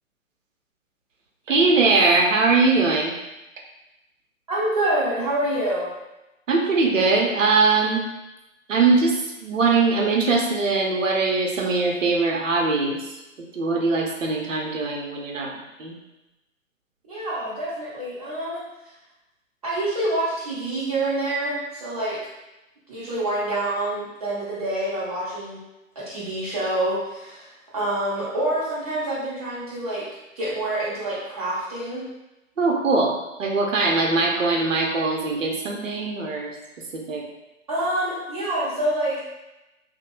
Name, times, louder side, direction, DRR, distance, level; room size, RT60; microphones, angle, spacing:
voice 1, 1.5-3.1 6.5-8.0 8.7-15.9 32.6-36.5 36.9-37.3, right 3 dB, 70° right, 1 dB, 0.7 m, -21 dB
voice 2, 4.5-5.9 17.1-18.6 19.6-22.2 22.9-25.6 26.0-30.0 30.4-32.1 37.7-39.2, right 1 dB, 30° right, -8 dB, 0.6 m, -27 dB
2.8 x 2.1 x 3.0 m, 0.97 s
figure-of-eight pair, 130°, 40 cm